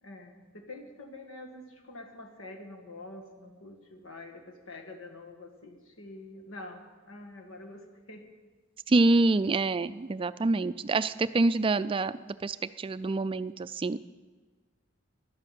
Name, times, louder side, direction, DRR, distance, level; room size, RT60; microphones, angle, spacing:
voice 1, 0.0-8.2 10.4-10.7, left 2 dB, 85° left, 3 dB, 2.0 m, -46 dB
voice 2, 8.9-14.0, right 2 dB, 25° right, 14 dB, 0.4 m, -26 dB
11.5 x 11.5 x 7.6 m, 1.3 s
head